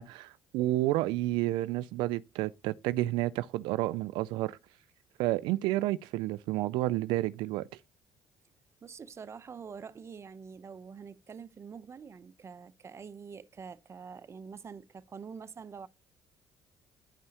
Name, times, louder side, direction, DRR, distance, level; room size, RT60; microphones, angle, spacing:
voice 1, 0.0-4.6 5.2-7.7, right 16 dB, 85° right, 0.3 m, -30 dB
voice 2, 8.8-15.9, right 6 dB, 35° right, 0.7 m, -46 dB
11.0 x 5.5 x 2.8 m
supercardioid pair, 80°, 8 cm